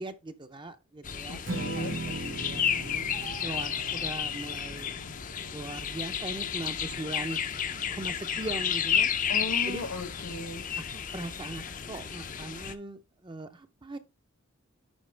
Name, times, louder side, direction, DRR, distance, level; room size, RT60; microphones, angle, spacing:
voice 1, 0.0-3.1 3.4-4.9 5.5-7.4 7.7-9.1 9.6-9.9 10.8-14.0, right 2 dB, 20° right, 0.6 m, -40 dB
sound 1, 1.0-12.7, left 8 dB, 35° left, 0.5 m, -32 dB
voice 2, 1.3-2.0 9.3-10.7, left 2 dB, 70° left, 1.3 m, -37 dB
Strum, 1.4-7.7, right 2 dB, 55° right, 1.1 m, -40 dB
sound 2, 3.0-4.2, right 5 dB, 85° right, 1.3 m, -48 dB
11.5 x 4.2 x 3.3 m
head